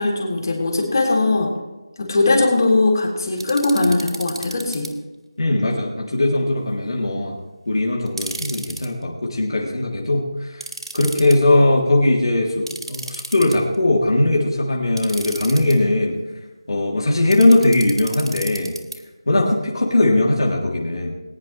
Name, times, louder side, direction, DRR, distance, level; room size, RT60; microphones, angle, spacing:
voice 1, 0.0-1.5 2.0-4.9, left 2 dB, 45° left, -1 dB, 3.6 m, -19 dB
sound 1, 3.4-4.9 8.1-8.9 10.6-11.4 12.7-13.8 15.0-15.7 17.3-19.0, right 2 dB, 75° right, 2.5 m, -32 dB
voice 2, 5.4-7.4 7.7-10.7 10.9-16.2 16.7-18.7 19.3-21.2, left 2 dB, 65° left, -2 dB, 3.1 m, -19 dB
21.0 x 10.5 x 3.3 m, 1.1 s
figure-of-eight pair, 175°, 3 cm